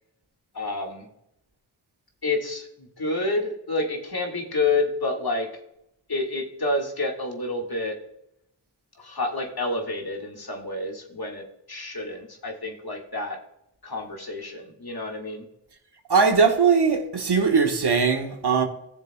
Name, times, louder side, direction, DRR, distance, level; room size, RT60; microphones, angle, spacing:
voice 1, 0.5-1.1 2.2-5.5 6.1-8.0 9.0-13.4 13.8-15.5, left 2 dB, 55° left, 1.8 m, -29 dB
voice 2, 16.1-18.6, right 5 dB, 60° right, 1.3 m, -20 dB
14.5 x 6.9 x 2.3 m
cardioid pair, 40°, 44 cm